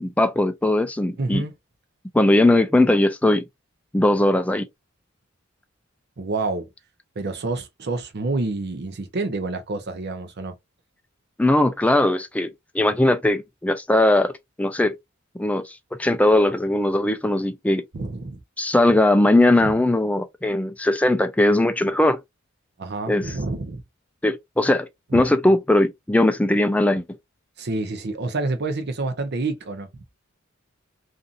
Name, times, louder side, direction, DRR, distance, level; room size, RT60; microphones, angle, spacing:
voice 1, 0.0-1.4 2.1-3.5 3.9-4.7 11.4-14.3 14.6-14.9 15.3-17.8 18.6-22.2 23.1-23.3 24.2-27.0, left 1 dB, 5° left, 0.4 m, -19 dB
voice 2, 1.2-1.5 6.2-6.7 7.2-10.5 17.9-18.4 19.6-19.7 22.8-23.8 25.1-25.2 27.6-29.9, right 3 dB, 55° right, 0.6 m, -28 dB
2.6 x 2.5 x 2.4 m
head